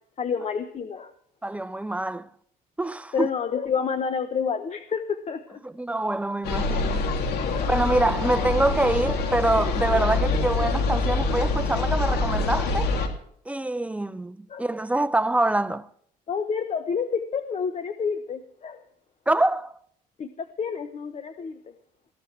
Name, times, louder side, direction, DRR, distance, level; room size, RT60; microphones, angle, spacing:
voice 1, 0.2-1.1 3.1-5.6 7.4-7.7 14.5-14.6 16.3-18.8 20.2-21.6, left 6 dB, 40° left, 1.0 m, -29 dB
voice 2, 1.4-2.3 2.8-3.3 5.6-7.1 7.7-12.9 13.5-15.9 19.3-19.7, right 2 dB, 10° right, 0.6 m, -25 dB
sound 1, 6.4-13.1, left 3 dB, 70° left, 3.0 m, -25 dB
20.0 x 15.0 x 3.4 m
cardioid pair, 110°, 17 cm